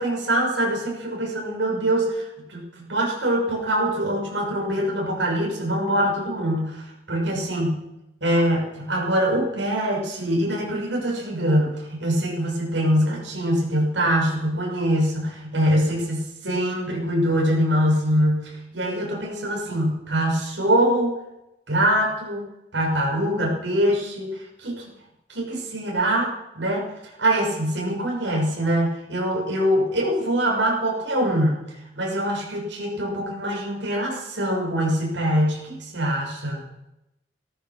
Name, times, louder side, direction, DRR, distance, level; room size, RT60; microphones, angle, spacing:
voice 1, 0.0-7.8 8.2-21.2 21.7-22.5 22.7-24.8 25.3-26.9 27.2-31.6 31.9-36.6, equal, 85° right, -3 dB, 6.5 m, -23 dB
16.5 x 14.0 x 6.2 m, 0.90 s
head